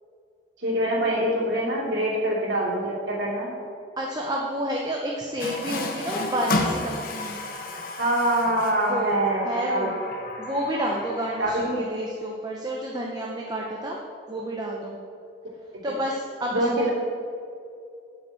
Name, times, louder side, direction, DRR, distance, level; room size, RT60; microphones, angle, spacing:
voice 1, 0.6-3.5 8.0-9.9 11.4-11.8 16.5-16.9, right 1 dB, 75° right, -5 dB, 2.6 m, -24 dB
voice 2, 4.0-7.4 8.9-9.2 9.4-9.9 10.4-14.0 14.3-15.0 15.8-16.9, right 1 dB, 20° right, -1 dB, 0.8 m, -30 dB
Water tap faucet, 5.4-11.7, left 2 dB, 50° left, 0.9 m, -32 dB
8.5 x 5.7 x 7.7 m, 2.4 s
head